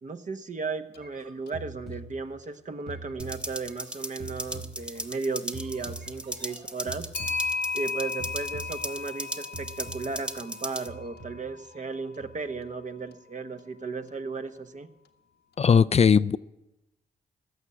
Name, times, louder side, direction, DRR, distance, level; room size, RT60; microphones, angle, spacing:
voice 1, 0.0-7.1 7.7-14.9, right 4 dB, 45° right, 8 dB, 1.2 m, -35 dB
Clock, 0.9-1.0 1.5-1.6 4.4-4.6 7.1-11.4, left 5 dB, 85° left, 1.1 m, -35 dB
sound 1, 1.0-2.5 2.9-5.2 5.5-7.9 8.2-9.3 9.5-10.3 10.9-11.9 12.2-12.7, right 2 dB, 75° right, 4.2 m, -44 dB
sound 2, 3.2-10.9, equal, 5° right, 1.0 m, -38 dB
voice 2, 15.6-16.4, left 6 dB, 40° left, 15 dB, 0.4 m, -19 dB
15.0 x 6.5 x 9.7 m, 0.94 s
supercardioid pair, 50°, 17 cm